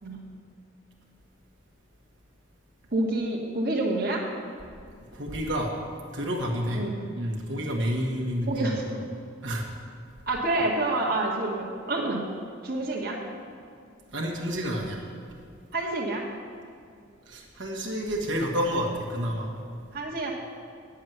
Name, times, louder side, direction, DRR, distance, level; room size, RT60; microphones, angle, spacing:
voice 1, 2.9-4.2 6.7-7.1 8.5-8.9 10.3-12.2 12.6-13.2 15.7-16.2 19.9-20.3, right 2 dB, 50° right, -2 dB, 1.6 m, -28 dB
voice 2, 5.1-5.7 6.1-6.8 7.1-8.7 9.4-9.6 14.1-15.0 17.3-19.5, equal, 65° right, -1 dB, 1.6 m, -29 dB
9.5 x 7.4 x 9.2 m, 2.3 s
head